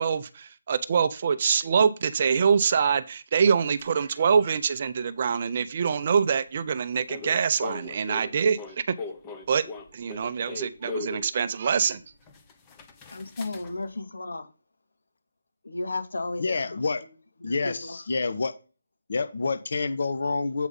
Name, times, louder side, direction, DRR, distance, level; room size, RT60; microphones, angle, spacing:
voice 1, 0.0-8.9 9.5-9.6 9.9-12.0, right 6 dB, 30° right, 0.6 m, -24 dB
sound 1, 3.8-3.9 7.1-11.3 12.0-12.1 12.3-13.8, left 4 dB, 15° left, 0.9 m, -38 dB
voice 2, 13.1-14.5 15.6-16.7 17.4-18.0, left 2 dB, 75° left, 2.2 m, -34 dB
voice 3, 16.4-17.0 17.4-18.5 19.1-20.7, left 4 dB, 50° left, 1.2 m, -28 dB
8.2 x 4.8 x 5.5 m
hypercardioid pair, 175°, 0 cm